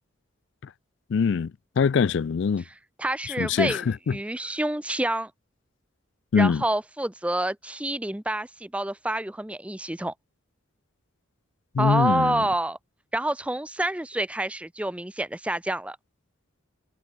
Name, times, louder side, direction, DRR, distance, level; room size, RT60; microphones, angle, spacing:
voice 1, 1.1-2.6 3.4-4.2 6.3-6.6 11.7-12.4, left 6 dB, 60° left, 0.3 m, -23 dB
voice 2, 3.0-5.3 6.4-10.1 11.8-12.8 13.1-16.0, right 1 dB, 5° right, 0.5 m, -28 dB
head